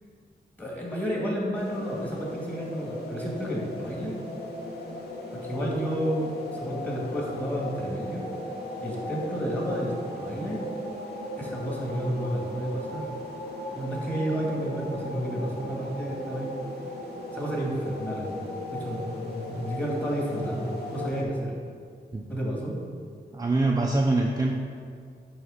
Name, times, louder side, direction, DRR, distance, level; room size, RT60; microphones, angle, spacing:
voice 1, 0.6-4.2 5.3-8.2 8.8-10.7 11.4-13.1 13.7-16.5 17.3-18.3 18.7-21.5 22.3-22.8, equal, 10° left, -4 dB, 2.1 m, -31 dB
sound 1, 1.5-21.2, left 1 dB, 70° left, 1.8 m, -37 dB
voice 2, 23.3-24.6, right 2 dB, 20° right, 0 dB, 0.6 m, -24 dB
9.1 x 3.2 x 6.5 m, 2.1 s
wide cardioid pair, 90°, 17 cm